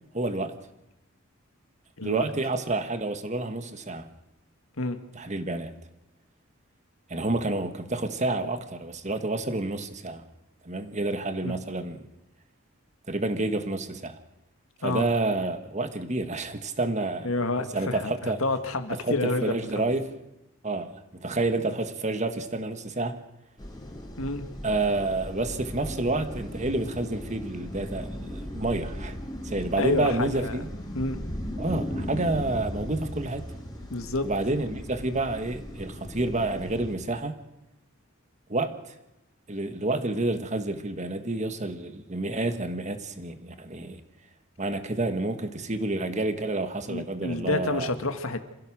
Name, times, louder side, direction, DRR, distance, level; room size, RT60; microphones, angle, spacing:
voice 1, 0.1-0.5 2.0-4.1 5.1-5.8 7.1-10.2 10.6-12.1 13.1-14.2 14.8-18.4 18.9-20.1 20.6-23.2 24.6-29.2 29.4-30.7 31.6-33.5 34.2-37.3 38.5-38.9 39.5-44.0 44.6-47.9, right 2 dB, 35° right, 1.6 m, -29 dB
voice 2, 17.2-19.9 24.2-24.4 29.8-30.6 31.0-31.2 33.9-34.3 46.9-48.4, left 2 dB, 80° left, 1.9 m, -29 dB
sound 1, 23.6-36.9, equal, 20° left, 4.2 m, -37 dB
27.0 x 15.5 x 6.5 m
head